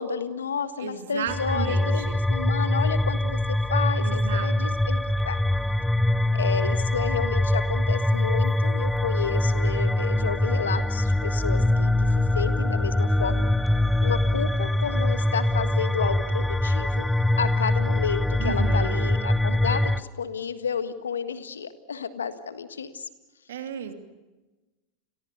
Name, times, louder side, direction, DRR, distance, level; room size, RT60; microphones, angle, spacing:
voice 1, 0.0-5.4 6.3-13.5 14.0-17.1 17.4-23.1, left 6 dB, 85° left, 11 dB, 1.6 m, -31 dB
voice 2, 0.8-2.2 4.0-4.8 18.4-19.1 23.5-23.9, right 9 dB, 75° right, 6 dB, 2.7 m, -34 dB
sound 1, 1.3-20.0, left 1 dB, 5° left, 0.8 m, -23 dB
29.5 x 22.0 x 6.7 m, 1.1 s
hypercardioid pair, 90°, 0 cm